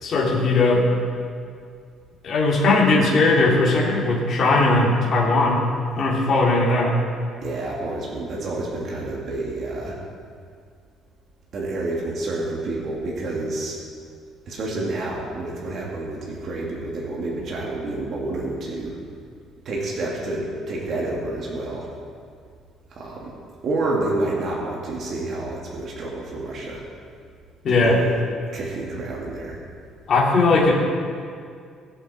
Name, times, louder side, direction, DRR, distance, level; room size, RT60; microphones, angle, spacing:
voice 1, 0.0-0.9 2.2-5.6 6.0-7.0 27.6-28.0 30.1-30.7, left 2 dB, 40° left, -5 dB, 3.0 m, -18 dB
voice 2, 7.4-10.0 11.5-13.8 14.5-19.0 19.6-21.9 22.9-23.3 23.6-26.8 27.7-28.2 28.5-29.6 30.6-30.7, right 2 dB, 45° right, -4 dB, 2.3 m, -29 dB
21.5 x 8.3 x 4.3 m, 2.2 s
cardioid pair, 145°, 0 cm